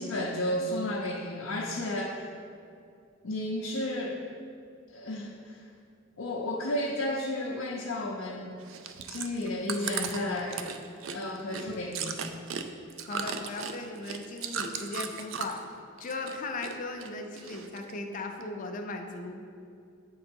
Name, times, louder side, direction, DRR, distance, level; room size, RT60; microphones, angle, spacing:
voice 1, 0.0-2.3 3.2-4.2 4.9-5.6 6.2-8.5 9.1-10.7 11.1-12.1, left 1 dB, 85° left, -4 dB, 0.6 m, -32 dB
Chewing mastication, 8.6-15.7 16.0-16.7 17.0-17.9 18.4-18.5, right 7 dB, 70° right, 0.4 m, -36 dB
voice 2, 13.1-15.6 16.0-19.4, left 3 dB, 40° left, 4 dB, 0.5 m, -37 dB
7.6 x 3.8 x 4.4 m, 2.5 s
head